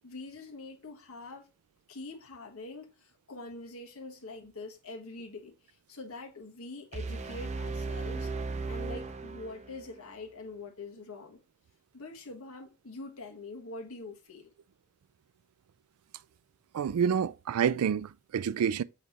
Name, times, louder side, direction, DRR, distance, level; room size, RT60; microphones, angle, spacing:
voice 1, 0.0-1.5 1.9-8.3 8.7-11.4 11.9-14.5, left 2 dB, 75° left, 1.5 m, -44 dB
sound 1, 6.9-9.9, right 3 dB, 30° right, 0.5 m, -36 dB
voice 2, 16.7-18.8, right 7 dB, 90° right, 0.4 m, -28 dB
7.3 x 3.2 x 4.1 m
head